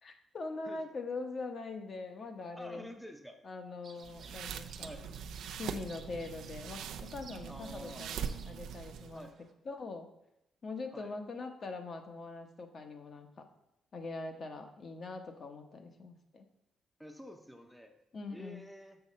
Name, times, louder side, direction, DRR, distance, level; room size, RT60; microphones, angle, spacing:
voice 1, 0.0-2.9 3.4-4.9 5.6-9.3 9.6-10.1 10.6-13.5 13.9-16.4 18.1-18.6, left 3 dB, 45° left, 5 dB, 1.0 m, -42 dB
voice 2, 2.6-3.4 4.8-5.1 7.5-8.0 9.1-9.3 10.9-11.1 17.0-17.9 18.3-19.0, equal, ahead, 4 dB, 0.7 m, -48 dB
sound 1, 3.8-9.5, right 5 dB, 50° right, 1.0 m, -57 dB
sound 2, 4.0-9.3, right 7 dB, 90° right, 0.5 m, -42 dB
6.9 x 4.2 x 6.7 m, 0.82 s
cardioid pair, 115°, 0 cm